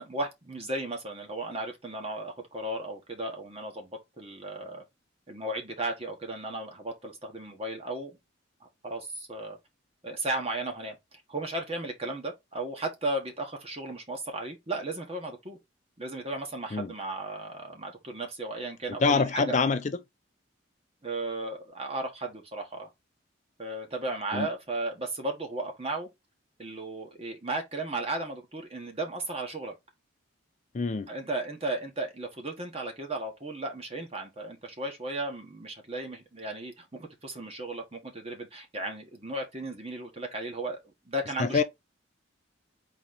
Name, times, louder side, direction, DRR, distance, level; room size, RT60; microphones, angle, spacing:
voice 1, 0.0-4.8 5.3-8.1 8.6-9.6 10.0-15.6 16.0-19.6 21.0-22.9 23.6-26.1 26.6-29.7 31.1-40.8 41.1-41.6, right 2 dB, 30° right, 1.2 m, -35 dB
voice 2, 18.9-19.9 24.3-24.5 30.7-31.1 41.4-41.6, left 4 dB, 35° left, 0.4 m, -25 dB
4.1 x 3.1 x 3.8 m
head